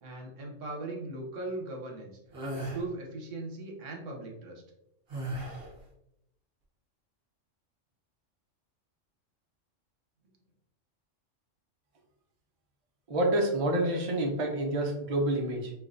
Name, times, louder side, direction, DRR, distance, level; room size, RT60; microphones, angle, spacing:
voice 1, 0.0-2.1 2.5-4.6, right 2 dB, 80° right, 0 dB, 1.2 m, -39 dB
sound 1, 2.3-2.8 5.1-5.8, right 1 dB, 55° right, 1.1 m, -36 dB
voice 2, 13.1-15.7, right 1 dB, 35° right, 0 dB, 0.6 m, -28 dB
4.6 x 2.3 x 2.5 m, 0.80 s
omnidirectional pair, 1.3 m